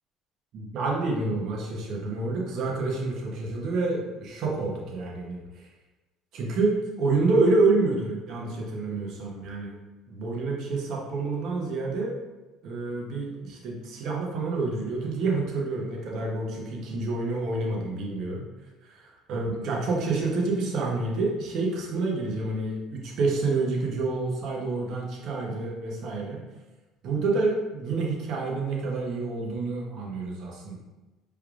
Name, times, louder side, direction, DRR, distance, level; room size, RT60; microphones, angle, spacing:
voice 1, 0.5-5.4 6.3-9.8 10.1-12.1 12.6-18.4 18.9-26.4 27.0-30.8, right 3 dB, 65° right, -1 dB, 0.9 m, -28 dB
4.5 x 3.4 x 2.4 m, 1.1 s
supercardioid pair, 80°, 0 cm